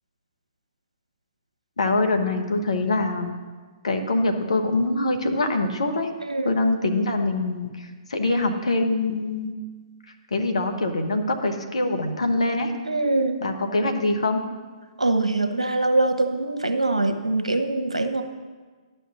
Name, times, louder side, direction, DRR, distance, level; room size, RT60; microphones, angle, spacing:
voice 1, 1.8-3.3 3.8-6.1 6.4-9.5 10.3-12.7 13.4-14.4, left 2 dB, 70° left, 5 dB, 1.2 m, -24 dB
voice 2, 6.2-6.6 12.9-13.4 15.0-18.2, right 2 dB, 85° right, 7 dB, 0.9 m, -23 dB
11.5 x 5.6 x 6.2 m, 1.4 s
figure-of-eight pair, 120°, 3 cm